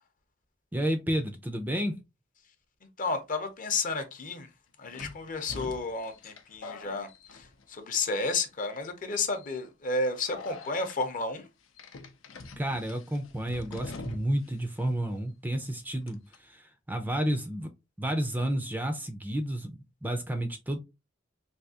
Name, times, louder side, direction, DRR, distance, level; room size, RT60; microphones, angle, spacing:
voice 1, 0.7-2.0 12.6-17.7 18.0-20.8, right 1 dB, 10° right, 0.4 m, -31 dB
voice 2, 3.0-4.5 4.8-11.5, left 3 dB, 40° left, 0.7 m, -32 dB
sound 1, 3.6-3.7 4.9-7.9 8.2-8.7 9.4-9.6 10.3-11.0 11.8-14.5 14.8-14.9 16.1-16.4, left 3 dB, 90° left, 0.6 m, -44 dB
3.4 x 2.7 x 2.7 m
head